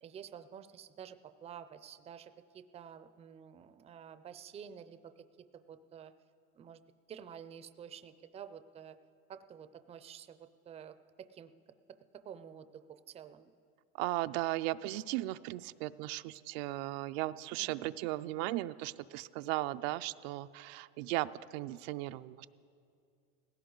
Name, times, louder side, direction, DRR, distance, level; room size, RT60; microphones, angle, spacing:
voice 1, 0.0-5.1 5.7-6.1 6.6-6.8 7.1-9.0 9.3-11.5 12.2-13.5 17.6-18.0, right 8 dB, 20° right, 11 dB, 0.4 m, -50 dB
voice 2, 13.9-22.5, right 17 dB, 75° right, 12 dB, 0.5 m, -36 dB
18.0 x 16.5 x 3.9 m, 2.4 s
supercardioid pair, 135°, 31 cm